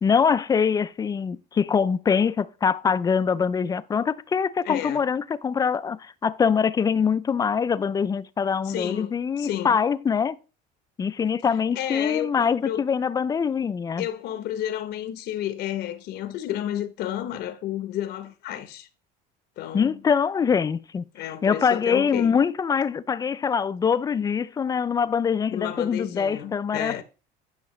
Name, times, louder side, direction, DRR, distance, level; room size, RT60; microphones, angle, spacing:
voice 1, 0.0-10.4 11.0-14.1 19.7-27.0, left 6 dB, 20° left, 0.3 m, -24 dB
voice 2, 4.6-5.0 8.6-9.8 11.7-12.8 14.0-18.9 19.6-20.0 21.1-22.4 25.5-27.0, left 11 dB, 60° left, 0.8 m, -31 dB
10.0 x 5.8 x 3.1 m
cardioid pair, 125°, 19 cm